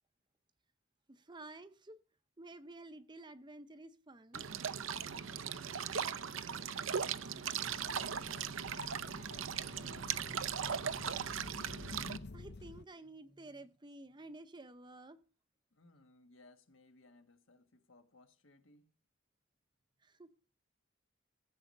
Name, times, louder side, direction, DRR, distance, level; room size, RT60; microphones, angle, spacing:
voice 1, 1.1-2.0 2.4-4.5 12.3-15.2 20.0-20.3, right 2 dB, 20° right, 0.7 m, -52 dB
sound 1, 4.3-12.2, right 7 dB, 70° right, 0.6 m, -38 dB
voice 2, 5.1-6.1 6.5-11.1 15.7-18.9, left 2 dB, 70° left, 1.4 m, -63 dB
sound 2, 7.6-12.8, left 3 dB, 50° left, 0.6 m, -50 dB
15.0 x 7.6 x 5.4 m
head